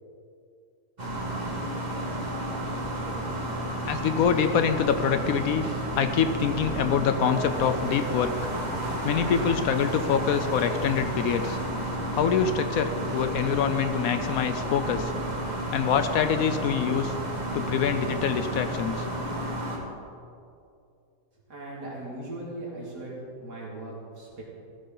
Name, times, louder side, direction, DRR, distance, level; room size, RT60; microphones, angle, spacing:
sound 1, 1.0-19.8, right 1 dB, 25° right, 1.6 m, -31 dB
voice 1, 3.8-5.6 6.0-8.3 9.0-11.6 12.1-15.1 15.7-17.1 17.5-19.0, left 7 dB, 70° left, 9 dB, 1.0 m, -25 dB
voice 2, 21.5-24.4, right 2 dB, 85° right, -4 dB, 3.3 m, -38 dB
15.5 x 10.5 x 3.9 m, 2.5 s
omnidirectional pair, 1.7 m